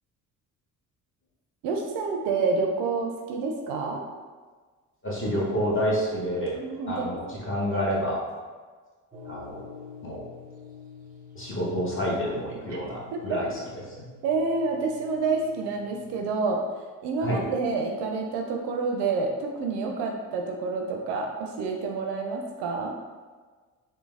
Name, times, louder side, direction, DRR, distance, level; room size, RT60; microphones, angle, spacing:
voice 1, 1.6-4.0 6.5-7.1 7.3-7.5 12.7-12.8 13.1-13.4 14.2-16.6 17.0-23.0, right 4 dB, 60° right, 2 dB, 0.5 m, -28 dB
voice 2, 5.0-6.6 6.9-8.2 9.2-9.6 10.0-10.2 11.3-13.6 13.9-14.0 17.2-17.4, equal, 25° left, -5 dB, 1.0 m, -28 dB
sound 1, 9.1-16.3, left 6 dB, 20° right, 0.6 m, -48 dB
3.1 x 2.1 x 2.3 m, 1.4 s
hypercardioid pair, 50°, 47 cm